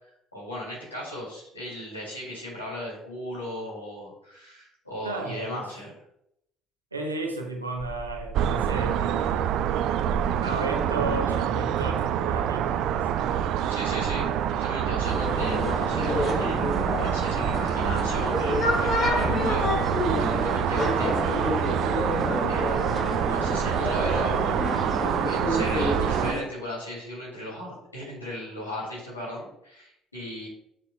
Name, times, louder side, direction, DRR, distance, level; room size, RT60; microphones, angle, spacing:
voice 1, 0.3-5.9 13.7-21.7 22.5-24.4 24.8-30.5, left 1 dB, 85° left, -5 dB, 3.0 m, -37 dB
voice 2, 5.0-5.6 6.9-9.4 10.4-13.3 14.1-14.3, right 2 dB, 90° right, 0 dB, 1.1 m, -34 dB
sound 1, 7.8-9.0 10.7-11.6 18.5-20.2, left 2 dB, 30° right, 1.4 m, -39 dB
sound 2, 8.3-26.3, right 9 dB, 55° right, 0.4 m, -26 dB
sound 3, 15.0-26.4, left 2 dB, 45° left, 2.0 m, -29 dB
8.8 x 6.7 x 2.5 m, 0.75 s
figure-of-eight pair, 55°, 0 cm